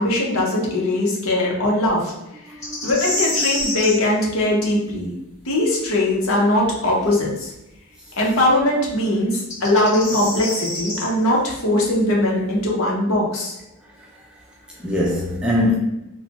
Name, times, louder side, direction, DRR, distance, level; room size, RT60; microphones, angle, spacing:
voice 1, 0.0-2.1 2.8-5.1 5.5-7.5 8.2-13.6, left 1 dB, 65° left, 0.8 m, -20 dB
voice 2, 2.5-3.3 14.1-14.2 14.7-15.8, left 1 dB, 5° right, 0.4 m, -23 dB
sound 1, 2.6-4.0 7.1-7.2 9.3-11.0, left 1 dB, 35° left, 1.4 m, -26 dB
3.1 x 2.1 x 2.9 m
head